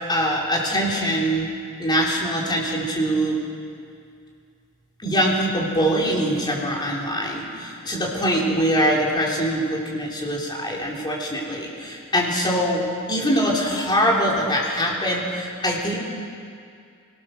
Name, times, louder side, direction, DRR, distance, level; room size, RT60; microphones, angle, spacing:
voice 1, 0.1-1.5 1.8-3.4 5.0-12.8 13.1-16.0, equal, 20° left, -3 dB, 3.6 m, -23 dB
22.5 x 18.0 x 6.6 m, 2.3 s
head